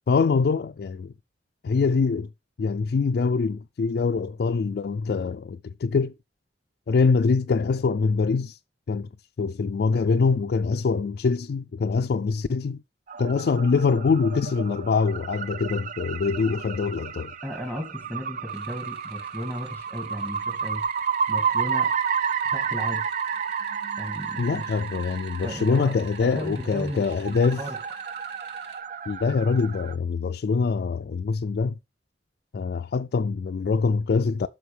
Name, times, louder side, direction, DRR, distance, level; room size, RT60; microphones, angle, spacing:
voice 1, 0.1-1.1 1.6-2.3 2.6-6.1 6.9-8.6 8.9-9.1 9.4-12.8 13.2-17.3 24.4-27.6 29.1-31.8 32.5-34.5, left 4 dB, 60° left, 0.3 m, -24 dB
sound 1, 13.1-29.9, right 7 dB, 45° right, 0.4 m, -31 dB
voice 2, 17.4-20.8 21.3-22.0 22.5-23.1 24.0-24.8 25.4-27.8, equal, 15° right, 1.8 m, -35 dB
sound 2, 18.5-28.8, right 3 dB, 70° right, 2.1 m, -52 dB
9.3 x 6.1 x 3.3 m
head